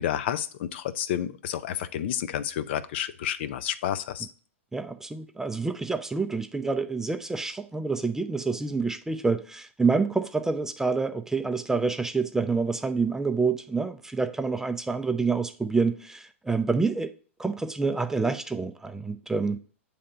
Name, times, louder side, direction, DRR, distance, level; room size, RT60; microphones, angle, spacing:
voice 1, 0.0-4.3, left 10 dB, 55° left, 0.5 m, -30 dB
voice 2, 4.7-17.1 17.4-19.6, right 4 dB, 5° right, 0.4 m, -27 dB
7.6 x 3.4 x 3.8 m
hypercardioid pair, 110°, 7 cm